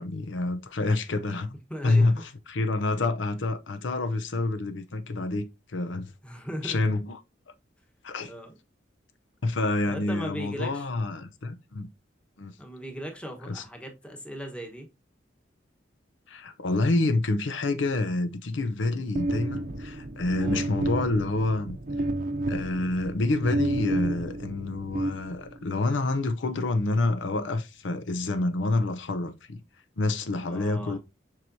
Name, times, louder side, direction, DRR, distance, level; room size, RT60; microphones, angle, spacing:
voice 1, 0.0-1.5 1.8-6.1 6.6-7.2 8.0-8.3 9.4-11.9 12.4-12.5 13.4-13.6 16.3-21.8 22.5-29.6 30.0-31.0, left 2 dB, 85° left, 0.7 m, -28 dB
voice 2, 1.7-2.2 6.2-6.9 8.2-8.6 9.9-10.9 12.6-14.9 20.4-20.6 30.5-31.0, equal, 5° left, 1.1 m, -38 dB
sound 1, 19.2-25.8, right 1 dB, 45° right, 0.7 m, -31 dB
7.3 x 4.7 x 2.7 m
head